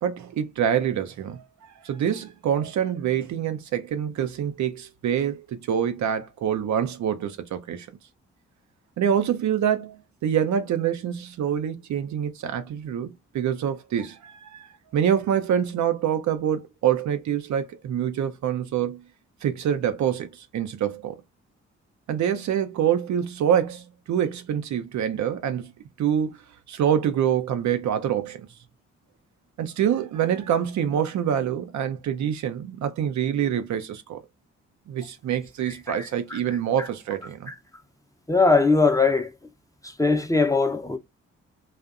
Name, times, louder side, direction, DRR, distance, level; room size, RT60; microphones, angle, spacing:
voice 1, 0.0-1.4 1.8-7.9 9.0-19.0 19.4-21.2 22.1-25.7 26.0-26.4 26.7-28.5 29.6-34.2 34.9-37.5, right 9 dB, 60° right, 0.5 m, -26 dB
voice 2, 38.3-39.3 39.8-41.0, left 3 dB, 10° left, 0.5 m, -20 dB
2.5 x 2.0 x 2.4 m
hypercardioid pair, 40°, 32 cm